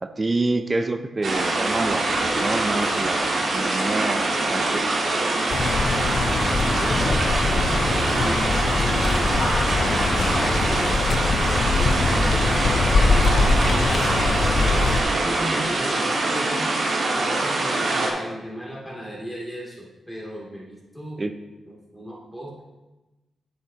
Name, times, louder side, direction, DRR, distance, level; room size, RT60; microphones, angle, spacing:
voice 1, 0.0-4.9 21.2-21.4, right 2 dB, 30° right, 9 dB, 0.5 m, -27 dB
sound 1, 1.2-18.1, right 2 dB, 60° right, 1.7 m, -24 dB
sound 2, 5.5-15.0, left 3 dB, 60° left, 0.6 m, -22 dB
voice 2, 6.2-10.9 11.3-16.7 17.1-21.2 21.6-22.6, equal, 5° left, -5 dB, 2.8 m, -36 dB
9.7 x 7.1 x 2.9 m, 1.1 s
cardioid pair, 70°, 0 cm